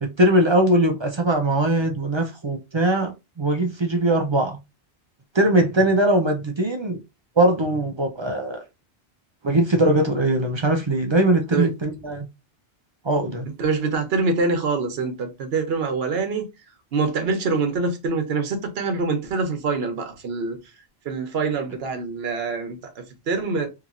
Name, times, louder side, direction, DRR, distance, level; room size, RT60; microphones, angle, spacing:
voice 1, 0.0-4.6 5.3-7.0 7.4-8.6 9.4-12.3 13.0-13.5, right 1 dB, 40° right, 0.4 m, -21 dB
voice 2, 13.6-16.5 16.9-20.6 21.0-23.7, right 4 dB, 75° right, 1.0 m, -25 dB
2.9 x 2.8 x 2.4 m
omnidirectional pair, 1.1 m